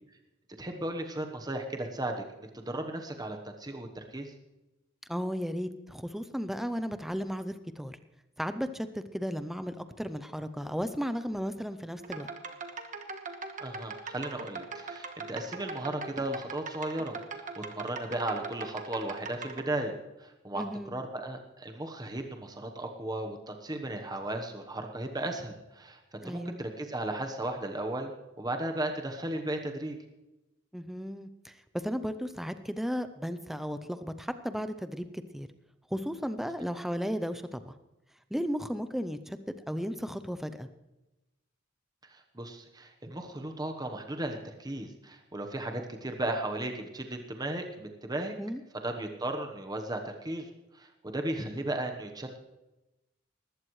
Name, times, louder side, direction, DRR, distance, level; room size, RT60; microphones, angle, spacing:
voice 1, 0.6-4.3 13.6-26.0 26.2-28.1 28.4-30.0 42.1-48.3 48.8-50.5 50.7-52.4, right 1 dB, 20° right, 4 dB, 1.1 m, -35 dB
voice 2, 5.1-8.0 8.4-12.3 20.5-20.9 26.2-26.6 30.7-35.0 35.3-35.5 35.9-37.8 38.3-39.4 39.7-40.7 48.4-48.6, equal, ahead, 10 dB, 0.5 m, -34 dB
sound 1, 12.0-19.6, right 4 dB, 40° right, 1.3 m, -41 dB
20.0 x 15.5 x 3.2 m, 1.0 s
head